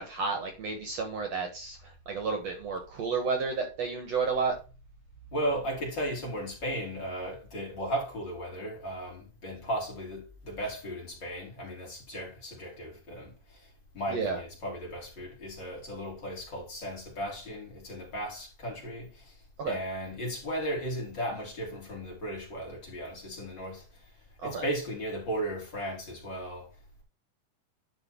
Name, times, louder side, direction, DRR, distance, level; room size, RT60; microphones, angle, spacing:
voice 1, 0.0-4.5 14.1-14.4 19.6-19.8 24.4-24.7, right 4 dB, 60° right, 2.2 m, -31 dB
voice 2, 5.3-13.7 13.9-19.4 19.7-24.1 24.4-26.7, right 1 dB, 35° left, 3.5 m, -36 dB
11.0 x 4.4 x 4.4 m
omnidirectional pair, 3.9 m